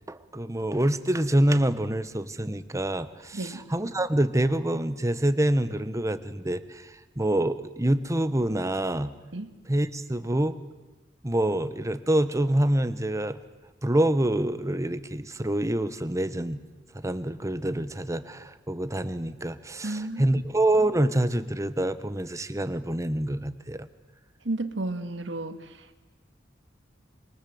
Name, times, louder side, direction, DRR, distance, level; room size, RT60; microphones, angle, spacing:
voice 1, 0.1-9.1 9.7-10.5 11.2-13.4 13.8-16.6 16.9-23.9, right 1 dB, 15° right, 12 dB, 1.1 m, -26 dB
voice 2, 3.3-3.6 9.3-9.5 19.8-20.3 24.4-25.8, right 2 dB, 70° right, 9 dB, 1.9 m, -32 dB
26.5 x 23.0 x 7.9 m, 1.2 s
head